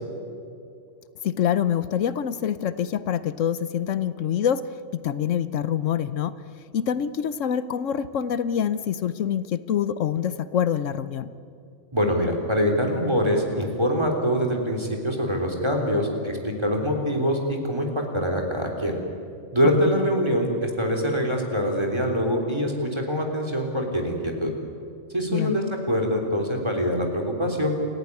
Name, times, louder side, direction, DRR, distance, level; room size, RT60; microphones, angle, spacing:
voice 1, 1.2-6.3 6.7-11.3 25.3-25.5, left 9 dB, 80° left, 14 dB, 1.1 m, -26 dB
voice 2, 11.9-19.0 19.5-24.5 25.1-27.8, equal, 20° right, 2 dB, 3.5 m, -24 dB
29.0 x 15.0 x 9.8 m, 2.5 s
omnidirectional pair, 1.3 m